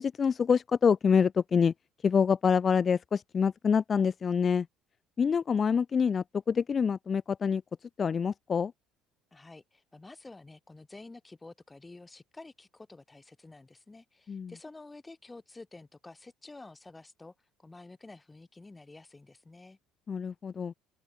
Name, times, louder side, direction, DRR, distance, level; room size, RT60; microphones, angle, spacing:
voice 1, 0.0-1.7 2.0-4.7 5.2-7.6 8.0-8.7 14.3-14.5 20.1-20.7, left 6 dB, 35° left, 0.6 m, -26 dB
voice 2, 9.3-17.3 17.6-19.8, left 3 dB, 15° left, 1.7 m, -50 dB
open air
supercardioid pair, 85°, 0 cm